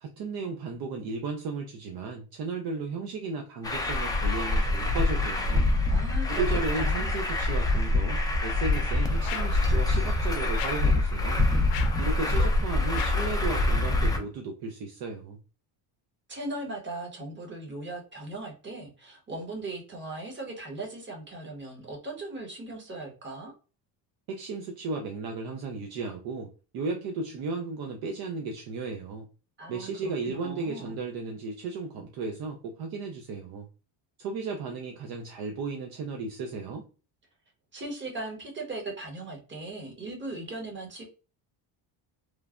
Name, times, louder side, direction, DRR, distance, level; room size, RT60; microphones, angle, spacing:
voice 1, 0.0-5.7 6.3-11.4 12.0-15.4 24.3-29.3 29.7-33.7 34.2-36.9, right 4 dB, 55° right, 3 dB, 0.5 m, -35 dB
Truck, 3.6-14.2, left 2 dB, 10° left, 0.3 m, -25 dB
voice 2, 5.9-7.1 16.3-23.5 29.6-31.0 37.7-41.0, right 2 dB, 25° right, 0 dB, 1.0 m, -38 dB
sound 1, 9.2-9.7 10.5-10.9 11.7-12.1 12.9-13.3, left 10 dB, 75° left, 0.6 m, -37 dB
3.1 x 2.1 x 2.3 m, 0.35 s
cardioid pair, 120°, 46 cm